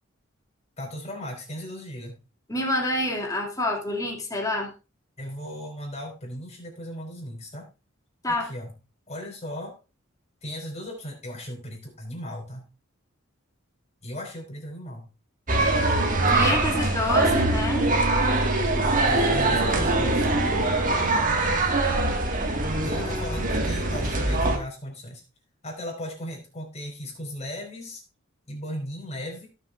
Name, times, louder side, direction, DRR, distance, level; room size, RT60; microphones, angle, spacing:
voice 1, 0.8-2.2 5.2-7.7 8.3-8.7 9.1-9.8 10.4-12.7 14.0-15.1 16.4-17.2 19.1-20.3 22.8-25.2 25.6-28.0 28.5-29.5, equal, 35° left, 0 dB, 4.8 m, -37 dB
voice 2, 2.5-4.7 8.2-8.5 16.3-17.9 22.9-23.5, left 1 dB, 20° left, 0 dB, 2.5 m, -28 dB
sound 1, 15.5-24.6, right 2 dB, 40° right, 1.8 m, -23 dB
18.0 x 7.2 x 2.5 m, 0.28 s
head